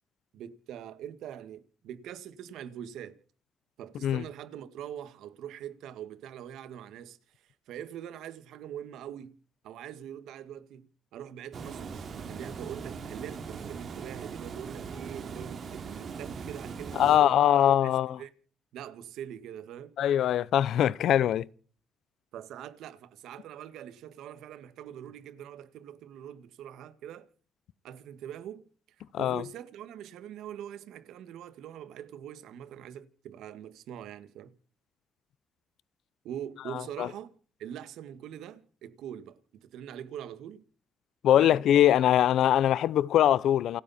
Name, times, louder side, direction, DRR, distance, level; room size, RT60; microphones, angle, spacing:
voice 1, 0.3-3.2 3.8-9.3 9.6-10.9 11.1-18.3 18.7-20.0 22.3-27.3 27.8-28.6 29.0-34.6 36.2-40.6 41.3-41.7, right 10 dB, 85° right, 1.9 m, -43 dB
Water, 11.5-17.2, right 5 dB, 50° right, 3.0 m, -40 dB
voice 2, 17.0-18.2 20.0-21.5 29.1-29.4 36.7-37.1 41.2-43.8, left 11 dB, 75° left, 0.7 m, -22 dB
29.0 x 9.8 x 4.3 m
cardioid pair, 90°, 0 cm